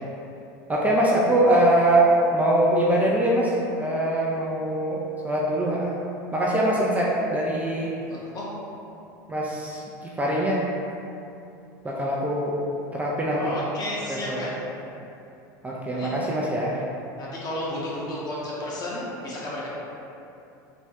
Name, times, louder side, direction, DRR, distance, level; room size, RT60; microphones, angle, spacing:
voice 1, 0.7-6.0 6.3-8.1 9.3-10.6 11.8-12.6 12.9-13.5 14.1-14.5 15.6-16.8, right 1 dB, 15° right, -5 dB, 0.3 m, -23 dB
voice 2, 8.1-8.5 13.3-14.5 15.9-16.1 17.2-19.7, left 1 dB, 40° left, -6 dB, 0.9 m, -32 dB
3.4 x 2.1 x 2.7 m, 2.7 s
supercardioid pair, 100°, 10 cm